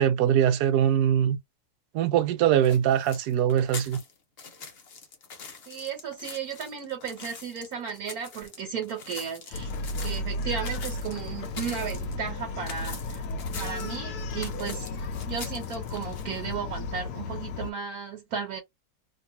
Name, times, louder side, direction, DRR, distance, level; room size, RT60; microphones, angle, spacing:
voice 1, 0.0-1.4 1.9-4.0, right 10 dB, 85° right, 1.2 m, -22 dB
sound 1, 2.6-16.5, left 5 dB, 50° left, 0.8 m, -43 dB
voice 2, 5.7-9.7 10.0-13.3 13.6-14.9 15.3-18.6, right 6 dB, 70° right, 1.5 m, -35 dB
Bark, 9.5-17.7, left 2 dB, 80° left, 1.2 m, -34 dB
3.0 x 2.3 x 2.8 m
omnidirectional pair, 1.7 m